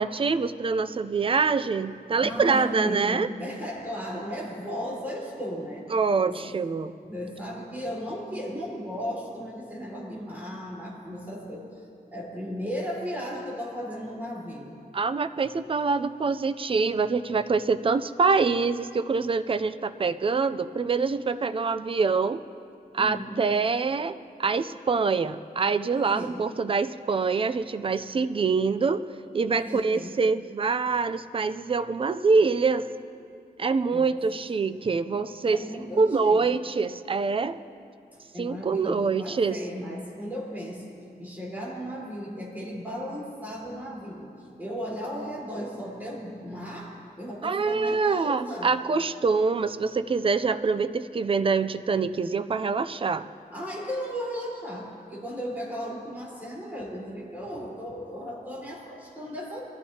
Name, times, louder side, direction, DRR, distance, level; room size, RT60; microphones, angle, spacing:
voice 1, 0.0-3.3 5.9-6.9 14.9-22.4 22.9-29.1 29.3-32.9 33.6-35.6 36.0-37.6 38.4-39.6 47.4-53.3, right 4 dB, 35° right, 12 dB, 0.4 m, -25 dB
voice 2, 2.2-5.9 6.2-6.5 7.1-14.8 23.0-23.3 26.0-26.4 29.6-30.2 33.9-34.1 35.4-36.5 38.3-40.9 41.2-46.9 47.2-48.7 53.5-59.6, equal, 10° right, -6 dB, 4.1 m, -35 dB
23.0 x 14.5 x 2.8 m, 2.5 s
wide cardioid pair, 150°, 16 cm